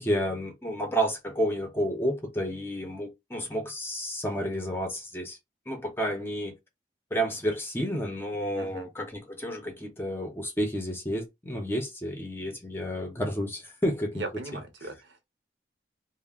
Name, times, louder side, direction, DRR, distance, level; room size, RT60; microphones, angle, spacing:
voice 1, 0.0-5.4 5.7-6.5 7.1-14.2, equal, 15° left, 0.6 m, -31 dB
voice 2, 8.6-8.9 14.1-15.2, right 2 dB, 80° right, 0.8 m, -39 dB
2.3 x 2.1 x 3.4 m
head